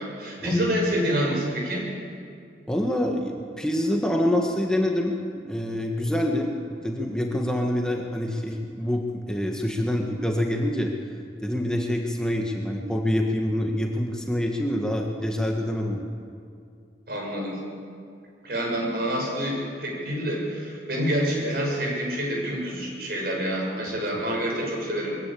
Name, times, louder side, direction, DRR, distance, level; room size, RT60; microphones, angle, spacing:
voice 1, 0.0-1.9 17.1-17.6 18.4-25.2, equal, 60° right, -1 dB, 6.2 m, -27 dB
voice 2, 2.7-10.9 11.4-16.1, left 1 dB, 5° left, 0 dB, 1.6 m, -26 dB
22.5 x 15.5 x 8.6 m, 2.4 s
head